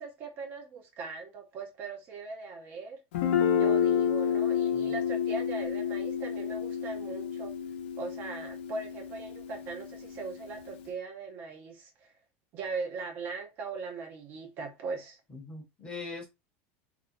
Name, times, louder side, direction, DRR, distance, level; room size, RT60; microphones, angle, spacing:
voice 1, 0.0-3.0 3.5-7.5 8.0-12.1 12.5-15.2, right 4 dB, 35° right, 0.5 m, -39 dB
Guitar, 3.1-10.8, left 8 dB, 80° left, 0.6 m, -30 dB
voice 2, 15.3-16.3, left 3 dB, 15° left, 0.7 m, -41 dB
2.5 x 2.1 x 2.6 m
supercardioid pair, 175°, 6 cm